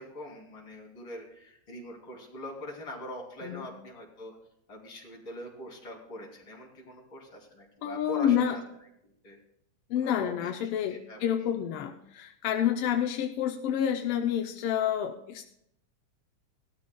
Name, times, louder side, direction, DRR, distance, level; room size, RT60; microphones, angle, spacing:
voice 1, 0.0-4.4 4.7-8.6 9.2-9.4 10.0-10.5 10.9-11.5, left 1 dB, 40° left, -2 dB, 3.8 m, -43 dB
voice 2, 7.8-8.6 9.9-15.4, left 9 dB, 75° left, 3 dB, 1.4 m, -29 dB
19.0 x 13.0 x 2.3 m, 0.74 s
omnidirectional pair, 3.3 m